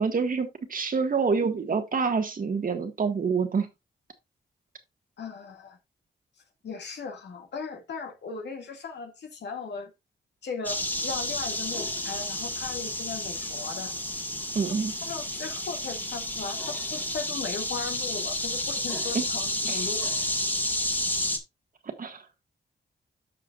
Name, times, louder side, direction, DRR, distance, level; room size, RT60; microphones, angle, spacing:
voice 1, 0.0-3.7 14.5-14.9 19.1-19.2 19.6-19.9 21.8-22.2, right 5 dB, 50° right, 1.6 m, -27 dB
voice 2, 5.2-5.8 6.6-9.9 10.4-13.9 15.0-20.1, left 5 dB, 75° left, 2.0 m, -37 dB
sound 1, 10.6-21.4, left 1 dB, 10° left, 1.6 m, -31 dB
13.5 x 4.8 x 2.4 m
cardioid pair, 75°, 18 cm